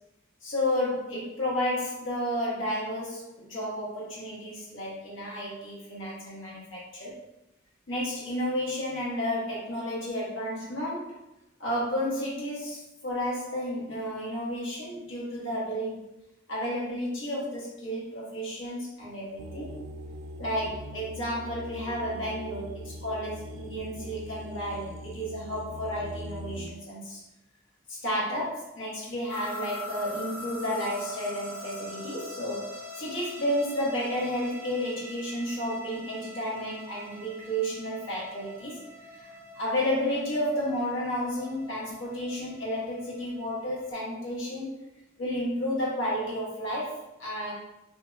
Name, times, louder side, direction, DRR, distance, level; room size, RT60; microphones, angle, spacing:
voice 1, 0.4-7.2 7.9-11.2 11.6-16.1 16.5-19.8 20.4-27.2 27.9-38.8 39.1-44.7 45.2-47.5, equal, 70° left, -6 dB, 1.1 m, -32 dB
sound 1, 19.4-26.7, equal, 70° right, 0.3 m, -41 dB
sound 2, 29.3-43.9, left 2 dB, 25° left, 0.7 m, -44 dB
2.8 x 2.7 x 2.3 m, 0.93 s
head